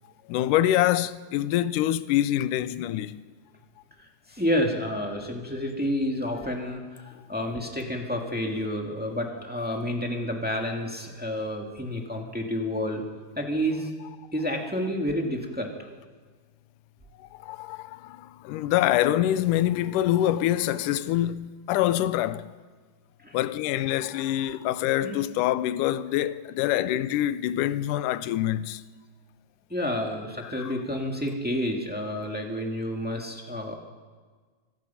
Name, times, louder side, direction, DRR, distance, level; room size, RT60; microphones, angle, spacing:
voice 1, 0.3-3.2 17.2-22.5 23.3-28.8 30.6-30.7, left 13 dB, 75° left, 2.0 m, -25 dB
voice 2, 4.0-13.0 13.3-13.9 14.3-15.7 23.2-23.4 25.0-25.2 29.7-33.8, equal, 5° right, 1.0 m, -29 dB
25.0 x 18.5 x 5.7 m
omnidirectional pair, 4.1 m